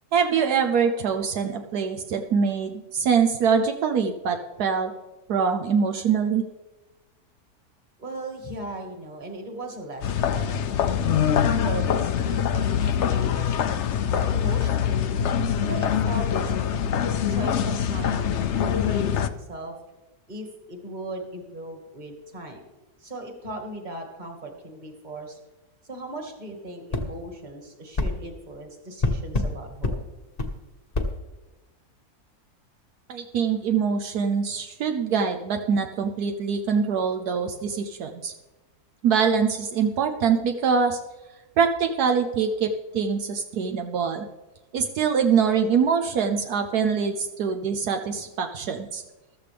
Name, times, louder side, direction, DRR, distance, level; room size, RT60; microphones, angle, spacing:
voice 1, 0.1-4.9 5.3-6.4 33.1-38.3 39.0-41.0 41.6-44.3 44.7-49.0, right 6 dB, 75° right, 4 dB, 1.3 m, -24 dB
voice 2, 8.0-11.3 11.6-15.2 15.6-19.7 20.3-22.6 23.0-25.4 25.8-30.0, right 1 dB, 30° right, 3 dB, 1.9 m, -38 dB
sound 1, 10.0-19.3, left 8 dB, 65° left, 0.8 m, -24 dB
sound 2, 26.9-27.1 28.0-28.1 29.0-29.5 29.8-30.0 30.4-30.5 30.9-31.1, left 2 dB, 30° left, 1.0 m, -25 dB
14.5 x 13.0 x 3.4 m, 1.1 s
omnidirectional pair, 1.7 m